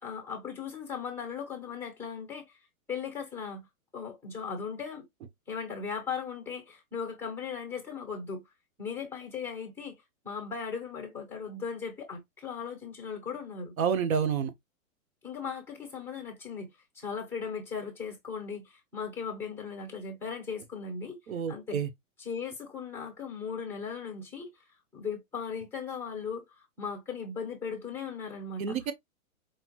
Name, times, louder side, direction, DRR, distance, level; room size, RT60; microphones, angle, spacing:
voice 1, 0.0-2.6 2.9-3.7 3.9-5.0 5.5-8.4 8.8-10.0 10.2-13.7 15.2-16.7 16.9-21.2 21.5-21.8 22.2-24.6 24.9-28.8, left 6 dB, 5° left, 1.1 m, -38 dB
voice 2, 13.8-14.5 21.3-21.9 28.6-28.9, right 7 dB, 75° right, 1.0 m, -29 dB
5.0 x 2.4 x 3.0 m
hypercardioid pair, 150°, 41 cm